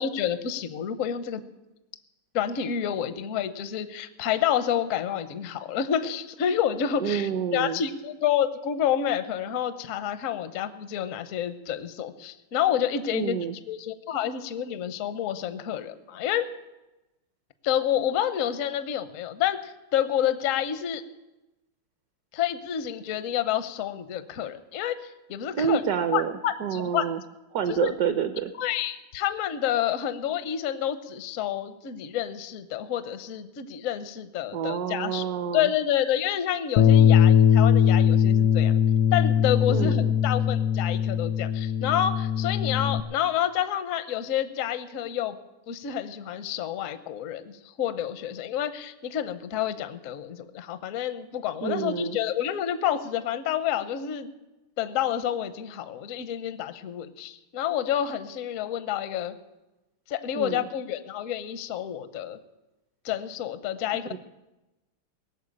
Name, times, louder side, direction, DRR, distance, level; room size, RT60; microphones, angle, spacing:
voice 1, 0.0-1.4 2.3-13.4 13.7-16.5 17.6-21.0 22.3-25.8 26.1-27.1 27.7-27.9 28.6-35.2 35.5-38.8 39.1-45.4 45.7-54.3 54.8-59.4 60.1-62.4 63.0-64.1, left 10 dB, 65° left, 11 dB, 0.8 m, -29 dB
voice 2, 7.0-7.8 13.1-13.5 25.5-26.3 26.6-27.2 27.5-28.5 34.5-35.7 39.7-40.1 51.6-52.2 60.3-60.7 64.1-64.2, right 8 dB, 65° right, 9 dB, 1.0 m, -28 dB
Bass guitar, 36.8-43.0, left 8 dB, 80° left, 1.5 m, -20 dB
18.5 x 6.9 x 8.6 m, 1.0 s
omnidirectional pair, 2.4 m